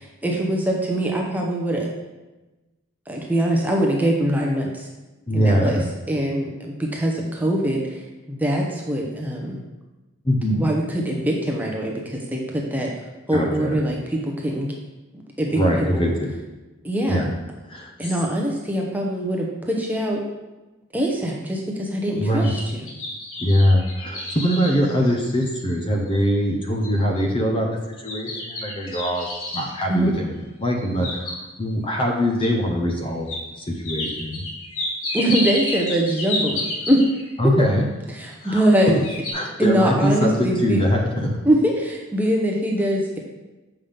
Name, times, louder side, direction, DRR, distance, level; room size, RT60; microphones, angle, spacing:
voice 1, 0.0-1.9 3.1-4.9 5.3-5.8 6.1-8.0 8.3-9.6 10.6-12.9 13.3-14.0 14.2-14.7 15.4-15.6 15.9-16.0 16.8-17.2 18.0-20.2 20.9-22.8 29.9-30.1 35.1-37.0 37.4-37.5 38.1-38.9 39.6-40.8 41.4-43.2, right 1 dB, 10° right, -1 dB, 0.8 m, -23 dB
voice 2, 5.3-5.8 10.2-10.7 13.3-13.8 15.6-16.3 17.1-17.3 17.7-18.1 22.2-22.5 23.4-27.7 28.0-29.3 29.5-30.3 30.6-33.3 33.6-34.4 37.4-37.9 38.4-39.0 39.3-41.4, equal, 25° left, 1 dB, 0.7 m, -22 dB
sound 1, 22.2-25.7 26.2-26.3 26.8-27.2 28.1-29.7 30.7-31.7 32.4-32.5 33.3-33.4 33.8-37.3 38.3-38.8 39.0-39.3, left 1 dB, 80° left, 1.5 m, -30 dB
7.1 x 5.5 x 3.5 m, 1.1 s
head